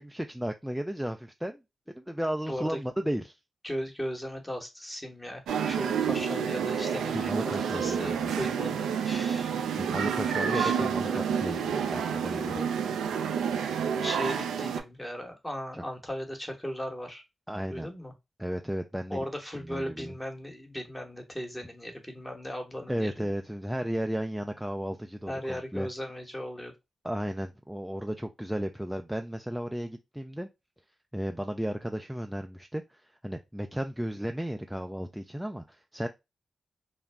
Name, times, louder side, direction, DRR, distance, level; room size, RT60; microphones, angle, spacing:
voice 1, 0.0-1.6 2.0-3.4 7.1-8.5 9.7-12.6 15.7-15.8 17.5-17.9 18.4-19.2 19.5-20.2 22.9-25.9 27.0-30.5 31.1-36.1, equal, 5° right, 0.4 m, -34 dB
voice 2, 2.5-2.8 3.6-7.4 7.7-9.5 10.4-11.3 12.5-12.8 14.0-17.2 17.7-18.1 19.1-23.3 25.3-26.7, equal, 15° left, 1.1 m, -37 dB
sound 1, 5.5-14.8, right 7 dB, 90° right, 0.3 m, -29 dB
2.3 x 2.0 x 3.4 m
supercardioid pair, 40°, 0 cm